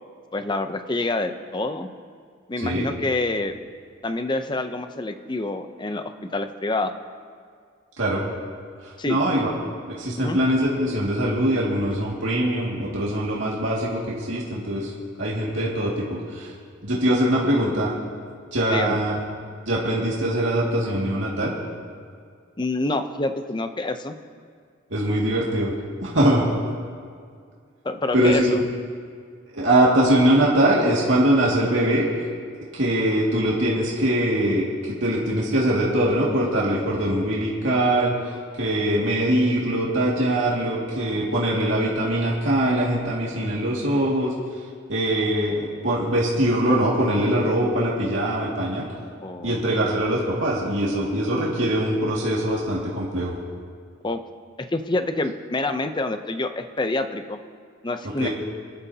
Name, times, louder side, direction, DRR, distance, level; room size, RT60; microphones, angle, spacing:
voice 1, 0.3-1.9 2.5-3.5 4.0-6.9 9.0-9.2 10.2-10.4 18.7-19.0 22.6-24.2 27.8-28.6 49.2-49.6 54.0-54.2 54.7-57.4 57.8-58.3, left 2 dB, 25° left, 8 dB, 0.6 m, -27 dB
voice 2, 9.1-9.5 10.0-14.9 15.2-16.5 16.8-17.9 18.5-19.2 19.7-21.5 24.9-25.7 26.0-26.4 28.1-28.5 29.5-32.0 32.7-38.1 38.6-44.3 44.9-48.9 49.4-53.3 58.2-58.3, right 1 dB, 70° right, -5 dB, 2.2 m, -22 dB
26.5 x 11.0 x 2.9 m, 2.1 s
head